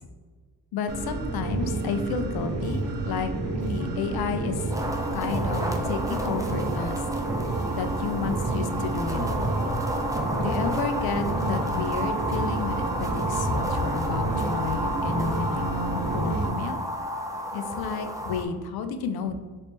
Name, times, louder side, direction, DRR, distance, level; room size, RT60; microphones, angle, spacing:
voice 1, 0.7-3.3 3.7-4.6 5.1-7.0 7.7-9.6 10.4-16.8 17.5-19.4, left 5 dB, 75° left, 8 dB, 0.5 m, -31 dB
sound 1, 0.9-16.5, right 2 dB, 40° right, 0.7 m, -30 dB
sound 2, 4.7-18.4, equal, 10° right, 0.4 m, -31 dB
3.1 x 2.7 x 3.4 m, 1.4 s
cardioid pair, 75°, 37 cm